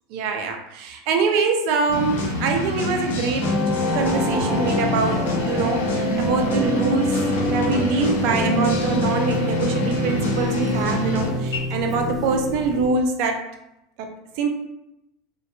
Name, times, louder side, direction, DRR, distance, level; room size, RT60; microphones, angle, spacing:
voice 1, 0.1-3.5 3.9-7.2 7.5-13.4 14.0-14.1 14.4-14.5, right 4 dB, 60° right, 4 dB, 0.4 m, -24 dB
sound 1, 1.9-11.6, left 1 dB, 80° left, 0.5 m, -27 dB
sound 2, 3.4-12.9, left 1 dB, ahead, 0.5 m, -26 dB
2.8 x 2.2 x 2.2 m, 0.86 s
hypercardioid pair, 90°, 0 cm